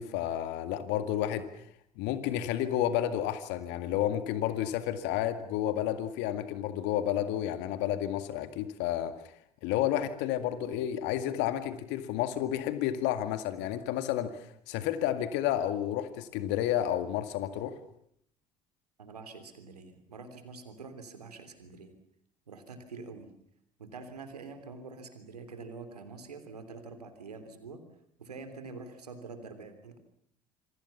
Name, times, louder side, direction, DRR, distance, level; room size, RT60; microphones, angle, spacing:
voice 1, 0.0-1.6 2.0-9.1 9.6-17.8, left 11 dB, 65° left, 10 dB, 2.0 m, -31 dB
voice 2, 19.0-21.9 22.5-23.3 23.8-27.8 28.2-30.0, right 4 dB, 90° right, 8 dB, 3.3 m, -46 dB
27.0 x 24.5 x 7.2 m, 0.68 s
hypercardioid pair, 55°, 19 cm